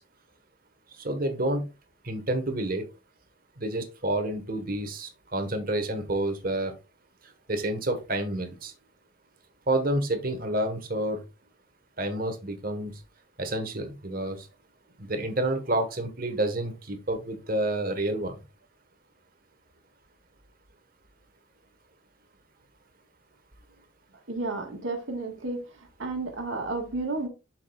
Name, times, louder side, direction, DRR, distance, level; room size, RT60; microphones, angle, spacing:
voice 1, 1.0-1.6 2.0-2.8 3.6-6.7 7.5-8.7 9.7-11.2 12.0-12.9 13.4-14.4 15.0-18.3, right 1 dB, 45° right, 1.3 m, -29 dB
voice 2, 24.3-25.6 26.0-27.3, right 2 dB, 80° right, 1.7 m, -31 dB
7.3 x 6.0 x 2.4 m
head